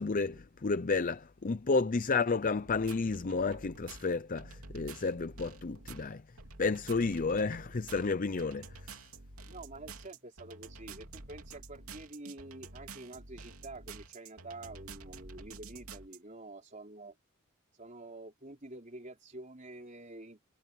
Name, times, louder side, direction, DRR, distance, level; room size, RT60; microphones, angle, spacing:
voice 1, 0.0-6.2 6.6-9.0, left 4 dB, 40° left, 0.6 m, -31 dB
sound 1, 2.6-16.2, right 3 dB, 70° right, 3.0 m, -49 dB
voice 2, 9.5-17.2 17.8-20.4, right 2 dB, 35° right, 3.9 m, -48 dB
head